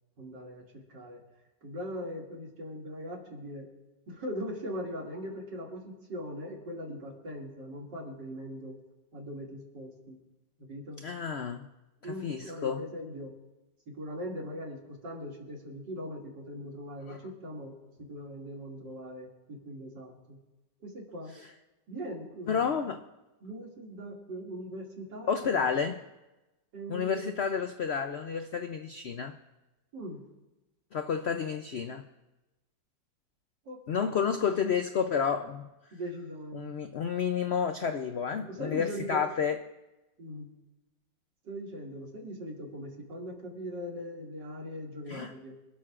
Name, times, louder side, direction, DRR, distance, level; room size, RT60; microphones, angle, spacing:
voice 1, 0.2-1.2 1.6-3.7 4.1-8.8 9.1-10.2 10.7-11.0 12.0-13.3 13.9-17.7 18.0-20.4 20.8-21.3 21.9-22.7 23.4-25.8 26.7-27.3 29.9-30.2 33.7-34.3 35.9-36.7 38.5-39.2 40.2-40.5 41.4-45.5, equal, 90° right, -1 dB, 3.0 m, -40 dB
voice 2, 11.0-11.7 12.0-12.9 17.1-17.2 21.4-21.5 22.5-23.0 25.3-26.0 26.9-29.4 30.9-32.0 33.9-35.7 36.5-39.6 45.1-45.3, left 6 dB, 75° left, 7 dB, 0.6 m, -30 dB
26.0 x 12.5 x 2.5 m, 1.0 s
omnidirectional pair, 1.9 m